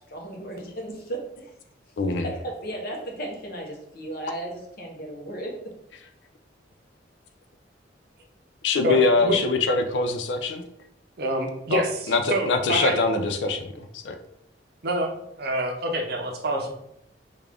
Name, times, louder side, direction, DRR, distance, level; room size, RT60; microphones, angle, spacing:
voice 1, 0.1-1.5 2.2-5.6, right 1 dB, 55° left, -1 dB, 0.9 m, -35 dB
voice 2, 2.0-2.3 8.6-10.6 11.7-11.8 12.1-14.2, left 3 dB, 75° left, 6 dB, 0.4 m, -23 dB
voice 3, 8.8-9.4 11.2-13.0 14.8-15.1 15.4-16.7, right 1 dB, 60° right, 2 dB, 0.6 m, -27 dB
3.5 x 2.4 x 3.4 m, 0.76 s
head